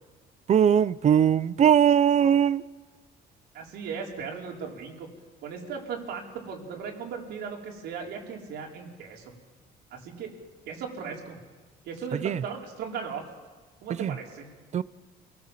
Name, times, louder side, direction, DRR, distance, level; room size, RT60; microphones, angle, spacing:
voice 1, 0.5-2.6 12.2-12.4 14.0-14.1 14.7-14.8, right 9 dB, 40° right, 0.7 m, -20 dB
voice 2, 3.5-5.1 5.4-9.3 9.9-10.3 10.7-11.4 11.9-13.2 13.8-14.5, right 6 dB, 80° right, 5.2 m, -37 dB
28.5 x 18.5 x 7.7 m
cardioid pair, 110°, 17 cm